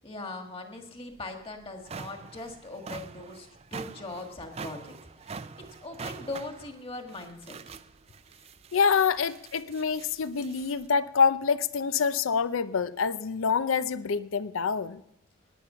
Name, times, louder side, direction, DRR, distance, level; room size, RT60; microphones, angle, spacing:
voice 1, 0.0-7.8, left 2 dB, 25° left, 4 dB, 1.8 m, -41 dB
sound 1, 1.1-1.2 1.6-10.9, right 5 dB, 30° right, 0.4 m, -44 dB
voice 2, 8.7-15.0, left 6 dB, 85° left, 15 dB, 0.5 m, -26 dB
17.0 x 10.0 x 5.7 m, 0.83 s
head